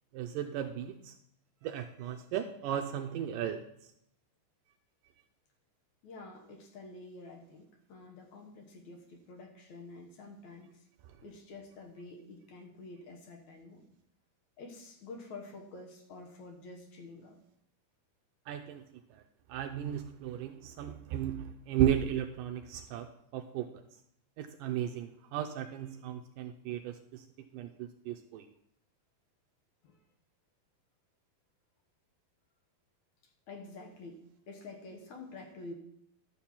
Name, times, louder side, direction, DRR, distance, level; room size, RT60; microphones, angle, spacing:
voice 1, 0.1-1.2 1.6-3.6 18.5-18.8 19.1-19.2 19.5-23.8 24.4-27.3 27.5-28.5, right 10 dB, 80° right, 5 dB, 2.0 m, -35 dB
voice 2, 6.0-10.8 11.2-13.9 14.6-17.4 29.8-30.0 33.5-35.7, left 3 dB, 65° left, 3 dB, 2.2 m, -48 dB
12.0 x 4.4 x 7.1 m, 0.73 s
omnidirectional pair, 4.2 m